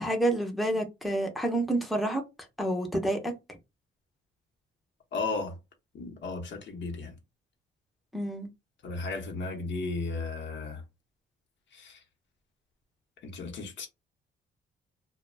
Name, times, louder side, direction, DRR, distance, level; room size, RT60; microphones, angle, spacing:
voice 1, 0.0-2.2 2.6-3.3 8.1-8.5, right 1 dB, ahead, 0.6 m, -28 dB
voice 2, 5.1-5.6 5.9-7.1 8.8-10.8 11.7-12.0 13.2-13.9, left 3 dB, 65° left, 0.8 m, -35 dB
2.2 x 2.1 x 3.2 m
cardioid pair, 90°, 20 cm